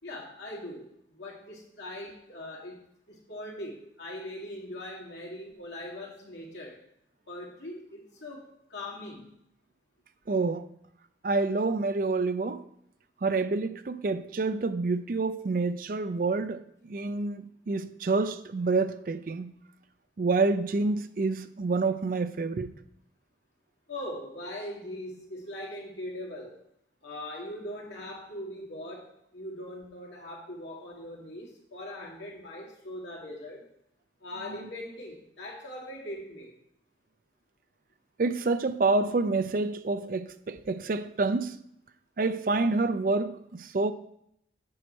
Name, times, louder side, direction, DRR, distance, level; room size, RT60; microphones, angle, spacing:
voice 1, 0.0-2.8 3.1-6.8 7.3-9.3 23.9-26.6 27.0-33.7 34.2-36.5, left 1 dB, 80° left, 2.2 m, -41 dB
voice 2, 10.3-10.7 11.2-12.7 13.2-19.5 20.2-22.7 38.2-41.6 42.2-43.9, right 3 dB, 50° right, 0.4 m, -28 dB
7.7 x 6.2 x 4.4 m
head